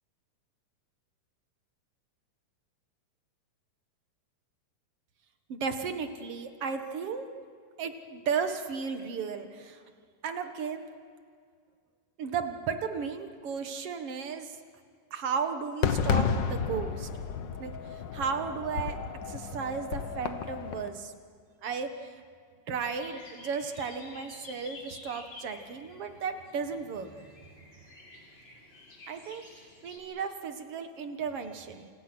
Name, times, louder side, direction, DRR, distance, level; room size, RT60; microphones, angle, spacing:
voice 1, 5.5-7.3 7.8-9.8 10.2-10.9 12.2-14.6 15.1-17.1 17.6-19.0 19.3-21.1 21.6-22.2 22.7-27.4 29.1-29.4 29.8-31.9, right 6 dB, 55° right, 7 dB, 2.3 m, -34 dB
Fireworks, 15.8-20.9, left 6 dB, 60° left, 1.2 m, -32 dB
sound 1, 22.9-30.0, left 2 dB, 35° left, 5.6 m, -50 dB
29.0 x 28.0 x 6.2 m, 2.1 s
omnidirectional pair, 3.5 m